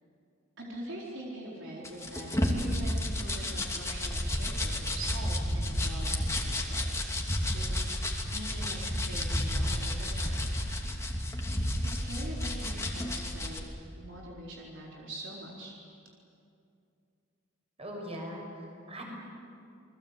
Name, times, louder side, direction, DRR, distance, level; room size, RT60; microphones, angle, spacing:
voice 1, 0.6-7.1 7.5-7.9 8.3-10.5 11.8-13.7 13.9-15.8, right 1 dB, 65° right, -4 dB, 4.3 m, -43 dB
sound 1, 1.8-13.6, left 1 dB, 15° left, 2.7 m, -31 dB
voice 2, 17.8-19.0, equal, 30° right, 0 dB, 6.5 m, -40 dB
29.5 x 21.5 x 8.3 m, 2.5 s
head